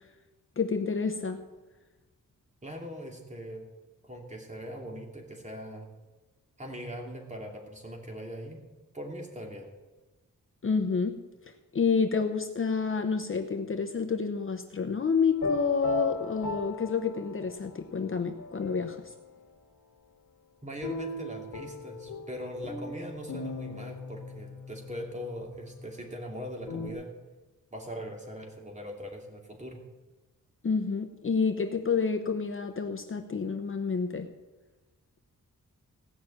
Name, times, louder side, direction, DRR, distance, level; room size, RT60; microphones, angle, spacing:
voice 1, 0.6-1.4 10.6-19.1 30.6-34.3, left 5 dB, 40° left, 6 dB, 0.8 m, -29 dB
voice 2, 2.6-3.6 4.0-5.9 6.6-8.6 8.9-9.7 20.6-27.1 27.7-29.8, equal, 20° right, 0 dB, 2.7 m, -40 dB
sound 1, 15.3-17.8 18.3-19.2 20.8-26.9, left 2 dB, 80° left, 1.8 m, -38 dB
17.0 x 6.0 x 8.8 m, 1.2 s
wide cardioid pair, 140°, 33 cm